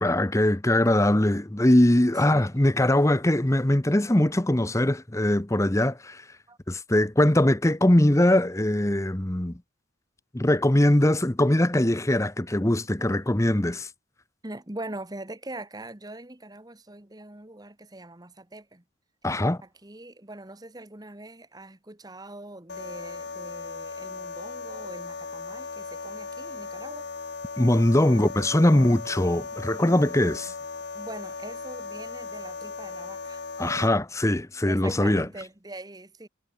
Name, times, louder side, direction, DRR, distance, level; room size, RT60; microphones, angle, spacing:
voice 1, 0.0-6.2 6.7-9.6 10.3-13.9 19.2-19.6 27.6-30.5 33.6-35.3, left 1 dB, 15° left, 0.8 m, -21 dB
voice 2, 2.2-2.6 6.5-6.6 13.0-13.1 14.4-18.8 19.6-27.1 28.0-28.9 29.2-29.9 30.9-33.9 34.2-34.3 34.6-36.3, right 2 dB, 20° right, 1.3 m, -43 dB
sound 1, 22.7-33.9, left 4 dB, 55° left, 1.0 m, -37 dB
head